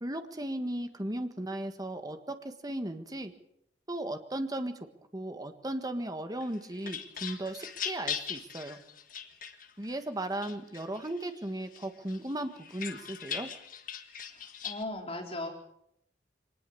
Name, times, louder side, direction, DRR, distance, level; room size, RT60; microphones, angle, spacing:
voice 1, 0.0-3.3 3.9-4.7 5.1-8.8 9.8-13.5, right 1 dB, 20° right, 8 dB, 1.6 m, -36 dB
sound 1, 6.4-10.0 10.4-11.3 11.7-14.8, left 8 dB, 50° left, 1.6 m, -40 dB
voice 2, 14.6-15.5, left 2 dB, 35° left, 1 dB, 4.5 m, -36 dB
23.5 x 19.5 x 7.1 m, 0.75 s
head